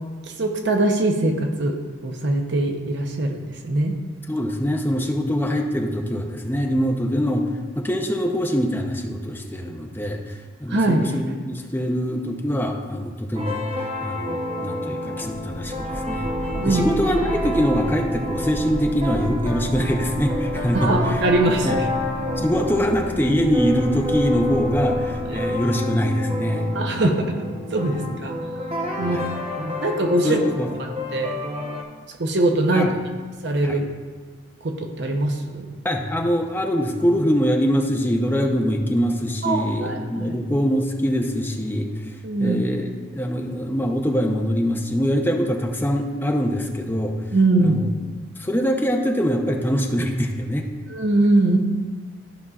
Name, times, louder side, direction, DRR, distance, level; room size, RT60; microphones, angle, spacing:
voice 1, 0.2-1.8 2.0-4.0 10.7-11.1 16.5-16.8 20.7-21.9 25.3-25.4 26.7-27.3 27.7-28.3 29.0-29.2 29.6-30.4 31.1-31.4 32.2-32.9 33.4-33.9 34.6-35.7 39.4-40.4 42.2-42.6 47.3-47.8 50.9-51.6, right 2 dB, 60° right, 3 dB, 0.8 m, -22 dB
voice 2, 4.3-7.4 7.8-13.6 14.0-16.3 16.6-21.2 21.6-21.8 22.4-27.0 29.0-29.3 30.2-30.7 32.7-32.9 33.6-33.8 35.8-41.9 42.4-47.2 47.6-47.9 48.4-50.7, equal, 10° left, 2 dB, 0.6 m, -23 dB
sound 1, 13.3-31.8, left 1 dB, 30° right, 0.9 m, -29 dB
sound 2, 15.2-25.8, equal, 15° right, 1.4 m, -33 dB
13.5 x 5.4 x 2.4 m, 1.4 s
head